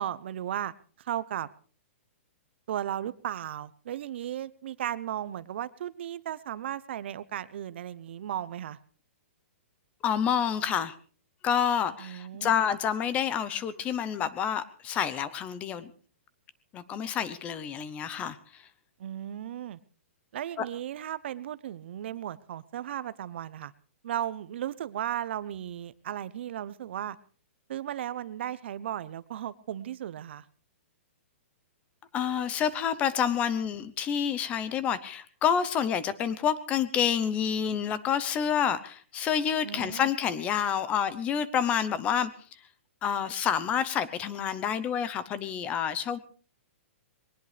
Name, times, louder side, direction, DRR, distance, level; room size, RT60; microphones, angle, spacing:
voice 1, 0.0-1.5 2.7-8.8 12.0-12.6 19.0-19.8 20.3-23.7 24.0-27.2 27.7-30.5 39.6-40.1, right 11 dB, 55° right, 17 dB, 0.8 m, -35 dB
voice 2, 10.0-10.9 11.4-15.9 16.7-18.4 20.6-20.7 32.1-42.3 43.0-46.2, left 8 dB, 20° left, 16 dB, 0.8 m, -28 dB
21.5 x 19.0 x 3.4 m, 0.43 s
hypercardioid pair, 160°, 7 cm